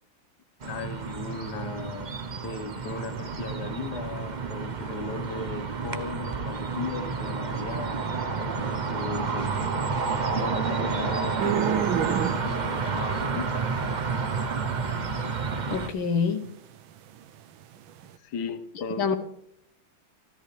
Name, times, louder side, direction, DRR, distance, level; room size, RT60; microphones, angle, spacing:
voice 1, 0.6-8.0 8.6-9.5 10.4-13.8 18.2-19.2, left 4 dB, 60° left, 9 dB, 1.7 m, -37 dB
sound 1, 0.6-15.9, right 4 dB, 65° right, 0.4 m, -30 dB
sound 2, 11.4-14.2 14.6-14.7 15.8-16.2 16.4-16.5 16.9-17.0 17.6-17.7 17.9-18.1, right 9 dB, 90° right, 1.6 m, -28 dB
voice 2, 15.7-16.4 18.8-19.2, left 5 dB, 80° left, 7 dB, 1.9 m, -26 dB
26.0 x 13.5 x 3.3 m, 0.69 s
omnidirectional pair, 2.2 m